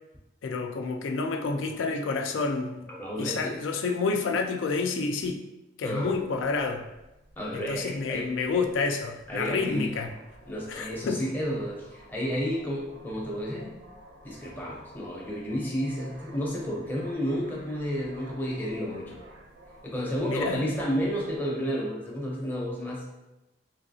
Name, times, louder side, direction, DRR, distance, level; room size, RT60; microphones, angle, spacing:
voice 1, 0.4-2.9 3.2-5.4 5.8-6.9 7.5-10.1 10.7-11.2 20.3-20.6, left 4 dB, 90° left, 5 dB, 0.3 m, -29 dB
voice 2, 2.9-3.6 5.8-6.1 7.4-8.3 9.3-10.0 10.5-13.8 14.2-19.2 19.8-23.1, equal, 10° left, -3 dB, 0.5 m, -31 dB
sound 1, 6.1-21.4, right 1 dB, 70° right, 0.6 m, -52 dB
3.1 x 2.7 x 2.6 m, 0.96 s
head